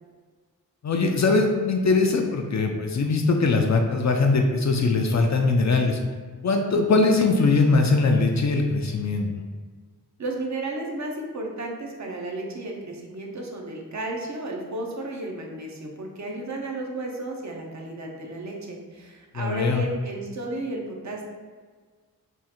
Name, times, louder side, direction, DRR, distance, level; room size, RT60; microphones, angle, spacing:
voice 1, 0.8-6.0 6.4-9.3 19.3-19.8, left 3 dB, 50° left, 3 dB, 0.4 m, -21 dB
voice 2, 10.2-21.2, right 2 dB, 50° right, 0 dB, 0.7 m, -33 dB
3.6 x 2.4 x 4.3 m, 1.5 s
wide cardioid pair, 115°, 36 cm